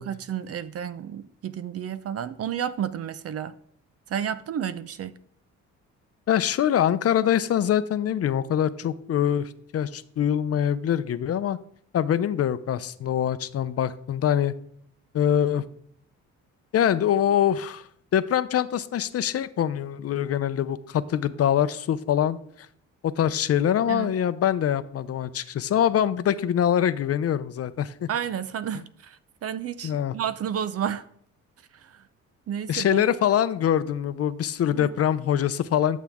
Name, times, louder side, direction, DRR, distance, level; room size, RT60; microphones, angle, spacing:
voice 1, 0.0-3.5 4.1-5.1 23.9-24.1 28.1-31.1 31.8-32.0 32.5-33.0 34.7-34.9, right 9 dB, 50° right, 0.6 m, -31 dB
voice 2, 6.3-11.6 11.9-14.5 15.1-15.6 16.7-22.4 23.0-28.1 29.8-30.1 32.7-36.0, left 10 dB, 50° left, 0.6 m, -24 dB
11.0 x 7.3 x 3.6 m
cardioid pair, 90°, 30 cm